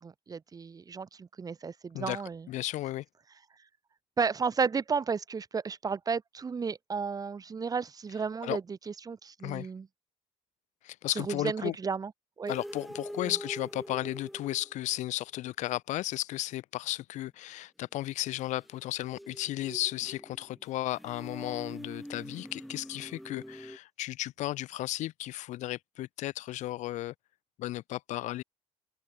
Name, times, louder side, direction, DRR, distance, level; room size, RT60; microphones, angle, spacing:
voice 1, 0.0-2.5 4.2-9.9 11.1-12.1 12.4-12.5, right 5 dB, 30° right, 1.3 m, -33 dB
voice 2, 2.5-3.0 8.4-8.6 9.4-9.7 10.8-11.7 12.5-27.1 27.6-28.4, left 15 dB, 85° left, 2.2 m, -34 dB
sound 1, 12.5-15.1 18.6-23.8, equal, ahead, 1.9 m, -44 dB
cardioid pair, 110°, 12 cm